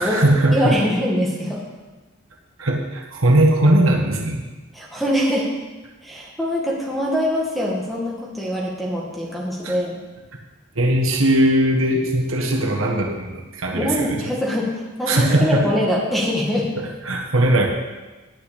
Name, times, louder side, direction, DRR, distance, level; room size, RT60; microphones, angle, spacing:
voice 1, 0.0-0.8 2.6-4.4 9.6-9.8 10.7-14.2 15.1-15.7 16.8-17.7, right 1 dB, 80° right, 1 dB, 1.7 m, -19 dB
voice 2, 0.5-1.6 4.7-5.5 6.0-10.0 13.7-16.7, equal, ahead, -4 dB, 2.0 m, -23 dB
10.0 x 6.1 x 8.5 m, 1.2 s
head